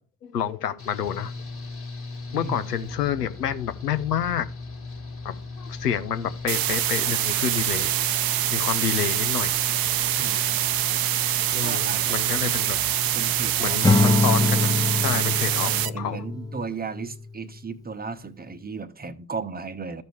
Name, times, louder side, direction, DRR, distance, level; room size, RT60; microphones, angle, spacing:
voice 1, 0.2-1.3 2.3-4.5 5.2-7.9 8.5-9.5 11.5-12.8 13.6-14.7 15.0-16.3, left 9 dB, 90° left, 0.6 m, -29 dB
Engine / Mechanical fan, 0.8-14.7, left 3 dB, 30° left, 1.6 m, -37 dB
voice 2, 2.3-2.7 10.1-10.6 11.6-12.6 13.1-14.2 15.6-20.0, right 4 dB, 20° right, 0.9 m, -36 dB
sound 1, 6.5-15.9, right 13 dB, 50° right, 0.7 m, -25 dB
Acoustic guitar / Strum, 13.8-17.2, left 3 dB, 10° left, 0.8 m, -23 dB
14.0 x 5.2 x 3.1 m
figure-of-eight pair, 45°, 46 cm